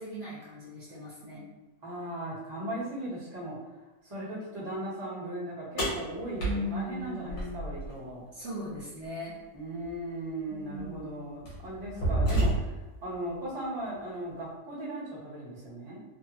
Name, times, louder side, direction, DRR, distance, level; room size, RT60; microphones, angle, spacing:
voice 1, 0.0-1.5 6.4-7.7 8.3-9.4 10.5-11.2, equal, 55° right, -8 dB, 0.9 m, -38 dB
voice 2, 1.8-3.6 4.0-8.2 9.5-16.0, right 1 dB, 20° right, -9 dB, 0.6 m, -37 dB
sound 1, 5.8-7.9 9.8-9.9 10.8-11.0 11.5-12.9, right 1 dB, 75° left, 1.7 m, -29 dB
3.3 x 2.1 x 2.8 m, 1.1 s
omnidirectional pair, 1.8 m